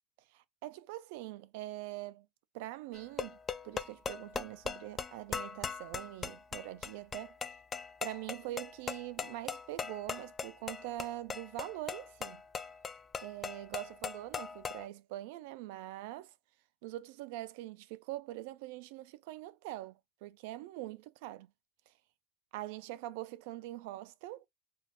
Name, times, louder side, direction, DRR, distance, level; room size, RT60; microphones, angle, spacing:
voice 1, 0.3-2.3 2.5-3.4 3.6-7.4 8.0-12.4 13.2-16.4 16.8-21.5 21.9-22.0 22.5-24.5, right 16 dB, 70° right, 0.4 m, -43 dB
sound 1, 2.9-14.9, left 6 dB, 30° left, 0.4 m, -40 dB
2.6 x 2.3 x 3.2 m
hypercardioid pair, 90°, 0 cm